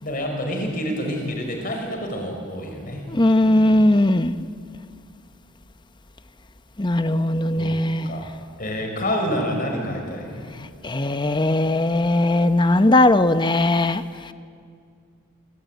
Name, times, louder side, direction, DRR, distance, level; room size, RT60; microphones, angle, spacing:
voice 1, 0.0-3.0 3.4-3.8 7.6-7.7 8.0-8.3 8.6-10.5, equal, 40° left, 3 dB, 5.6 m, -28 dB
voice 2, 3.1-4.3 6.8-8.1 10.8-14.0, left 1 dB, 20° left, 11 dB, 0.8 m, -19 dB
27.0 x 23.5 x 9.2 m, 2.3 s
head